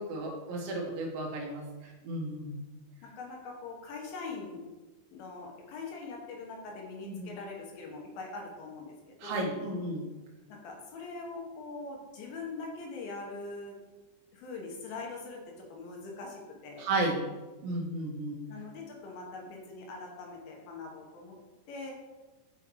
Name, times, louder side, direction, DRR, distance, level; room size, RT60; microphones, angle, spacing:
voice 1, 0.0-2.6 7.0-7.3 9.2-10.0 16.8-17.2 17.6-18.5, right 2 dB, 75° right, 0 dB, 2.8 m, -33 dB
voice 2, 3.0-4.6 5.1-9.5 10.5-13.7 14.3-15.4 15.7-16.9 18.5-21.4 21.7-21.9, left 3 dB, 80° left, 0 dB, 2.9 m, -42 dB
6.7 x 6.0 x 3.1 m, 1.2 s
omnidirectional pair, 4.3 m